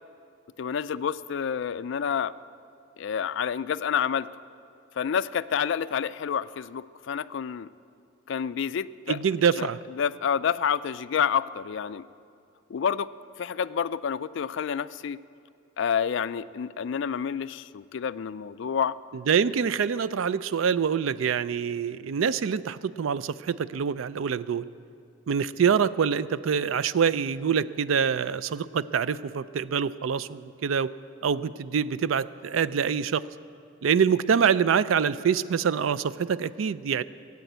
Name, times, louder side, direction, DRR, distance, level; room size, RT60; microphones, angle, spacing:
voice 1, 0.6-2.3 3.0-4.3 5.0-7.7 8.3-9.2 9.6-12.1 12.7-13.1 13.4-15.2 15.8-19.0, left 7 dB, 60° left, 16 dB, 0.3 m, -28 dB
voice 2, 9.1-9.8 19.3-24.6 25.3-30.9 31.2-33.2 33.8-37.0, right 7 dB, 75° right, 16 dB, 0.4 m, -25 dB
17.0 x 8.4 x 8.0 m, 2.5 s
head